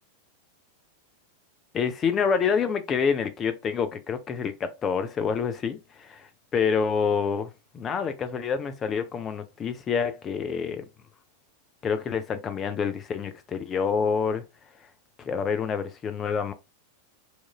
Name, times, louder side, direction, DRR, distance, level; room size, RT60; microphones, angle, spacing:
voice 1, 1.7-10.8 11.8-14.4 15.2-16.5, left 6 dB, 25° left, 0.4 m, -27 dB
2.9 x 2.4 x 2.2 m
figure-of-eight pair, 90°, 0 cm